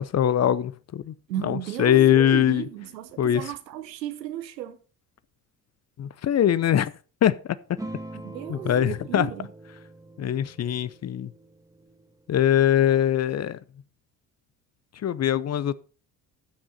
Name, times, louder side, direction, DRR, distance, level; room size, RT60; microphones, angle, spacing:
voice 1, 0.0-1.1 1.4-2.6 3.2-3.4 6.0-6.9 7.2-7.4 8.5-9.3 10.2-11.3 12.3-13.6 15.0-15.7, left 10 dB, 35° left, 0.6 m, -22 dB
voice 2, 1.3-4.8 8.1-9.5, right 12 dB, 85° right, 0.8 m, -34 dB
sound 1, 7.8-12.7, right 1 dB, 5° right, 1.4 m, -43 dB
13.0 x 6.2 x 4.0 m
hypercardioid pair, 50°, 49 cm